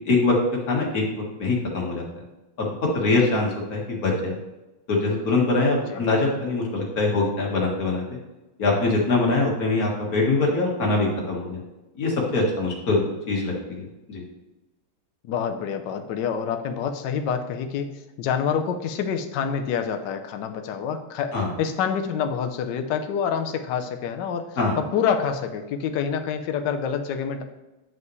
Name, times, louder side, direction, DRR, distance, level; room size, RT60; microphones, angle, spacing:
voice 1, 0.7-2.1 2.6-4.3 4.9-8.0 8.6-11.6 12.0-14.2 21.3-21.5 24.6-24.8, left 3 dB, 45° left, -2 dB, 1.9 m, -23 dB
voice 2, 15.2-17.9 18.2-24.5 24.8-27.4, left 7 dB, 65° left, 6 dB, 1.2 m, -27 dB
9.4 x 5.5 x 3.1 m, 1.1 s
omnidirectional pair, 2.3 m